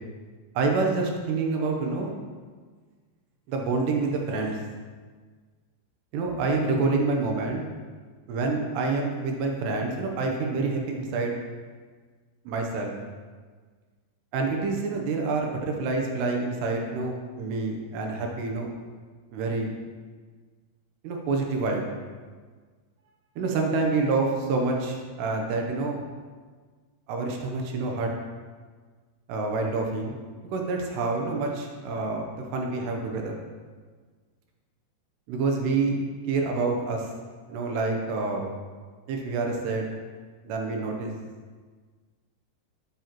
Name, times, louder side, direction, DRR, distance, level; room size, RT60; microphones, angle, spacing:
voice 1, 0.6-2.1 3.5-4.6 6.1-7.6 8.3-11.3 12.5-12.9 14.3-18.7 19.3-19.7 21.0-21.9 23.4-26.0 27.1-28.1 29.3-30.2 30.5-32.3 32.5-33.4 35.3-36.0 36.3-37.1 37.5-38.5 39.1-39.9 40.4-41.1, right 3 dB, 75° right, 1 dB, 2.8 m, -27 dB
12.0 x 7.2 x 3.0 m, 1.5 s
omnidirectional pair, 5.1 m